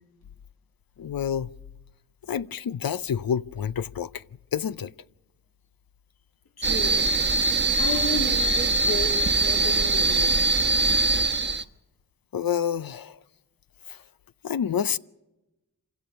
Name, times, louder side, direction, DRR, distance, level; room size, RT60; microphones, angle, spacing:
voice 1, 1.0-1.5 2.3-4.1 4.5-4.9 12.3-13.1 14.4-15.0, left 8 dB, 70° left, 0.7 m, -28 dB
voice 2, 6.6-7.1 7.8-10.4, left 4 dB, 90° left, 3.5 m, -33 dB
sound 1, 6.6-11.6, right 3 dB, 30° right, 1.2 m, -22 dB
26.0 x 16.5 x 6.8 m
cardioid pair, 40°, 36 cm